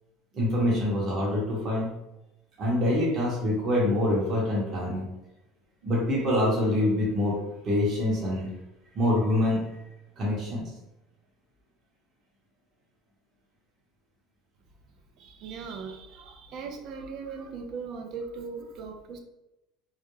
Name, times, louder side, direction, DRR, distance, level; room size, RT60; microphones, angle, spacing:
voice 1, 0.3-1.9 2.6-5.0 5.8-7.3 7.6-8.5 8.9-9.6 10.2-10.6, left 1 dB, 45° right, -5 dB, 0.9 m, -25 dB
voice 2, 15.2-19.2, right 5 dB, 60° right, 4 dB, 0.4 m, -39 dB
2.3 x 2.1 x 3.1 m, 0.93 s
supercardioid pair, 100°, 0 cm